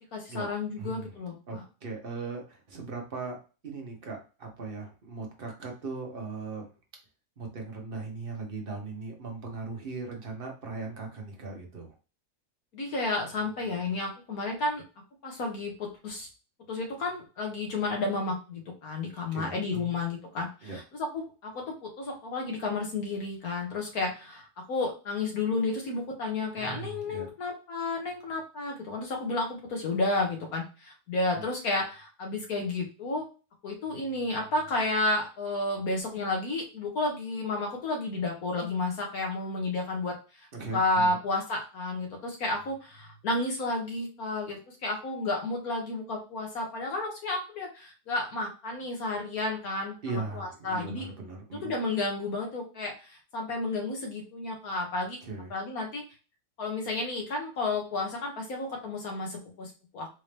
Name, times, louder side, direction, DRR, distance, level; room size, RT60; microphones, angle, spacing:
voice 1, 0.1-1.6 12.7-14.8 15.2-16.3 16.7-33.3 33.6-40.5 40.7-49.9 50.3-51.0 51.5-55.2 55.5-56.0 56.6-60.2, left 2 dB, 70° left, 1 dB, 1.4 m, -32 dB
voice 2, 0.8-3.4 3.6-6.7 7.4-11.9 19.3-19.9 20.6-20.8 26.6-27.3 31.3-31.4 40.5-41.2 50.0-51.7 55.2-55.5, right 4 dB, 40° right, 1 dB, 1.1 m, -38 dB
4.3 x 2.7 x 3.3 m, 0.32 s
omnidirectional pair, 1.6 m